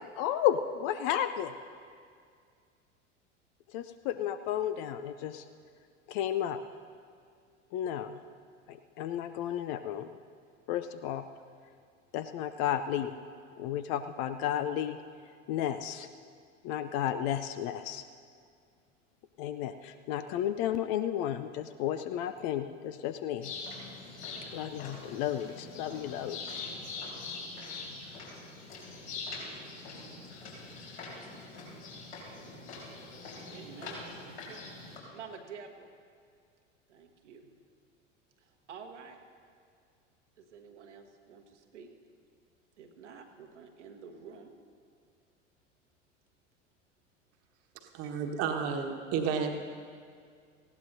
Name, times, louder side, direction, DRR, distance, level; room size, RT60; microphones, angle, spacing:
voice 1, 0.0-1.5 3.7-5.4 6.1-6.6 7.7-8.2 8.7-10.1 10.7-11.3 12.1-13.1 13.6-15.0 15.5-16.1 16.6-18.0 19.4-23.5 24.5-26.6, left 10 dB, 35° left, 10 dB, 0.4 m, -33 dB
sound 1, 23.4-35.0, left 3 dB, 65° left, 4.1 m, -43 dB
voice 2, 33.5-34.6 35.1-35.9 36.9-37.5 38.4-39.2 40.4-41.9 42.8-44.5, right 6 dB, 70° right, 4 dB, 1.3 m, -49 dB
voice 3, 47.9-49.5, right 6 dB, 40° right, 3 dB, 1.4 m, -31 dB
19.0 x 16.0 x 2.7 m, 2.2 s
figure-of-eight pair, 80°, 37 cm